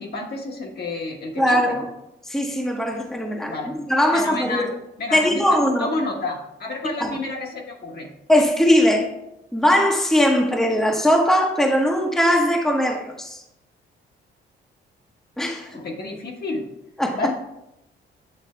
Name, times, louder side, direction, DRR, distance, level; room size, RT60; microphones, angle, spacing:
voice 1, 0.0-1.8 3.5-3.7 4.1-4.7 5.0-8.1 15.7-16.7 17.1-17.3, left 2 dB, 55° left, 1 dB, 1.4 m, -30 dB
voice 2, 1.4-1.9 2.3-4.7 5.1-5.9 7.0-7.2 8.3-9.1 9.5-13.4 15.4-15.7 17.0-17.3, equal, ahead, 1 dB, 0.9 m, -20 dB
8.1 x 3.4 x 4.3 m, 0.86 s
cardioid pair, 90°, 20 cm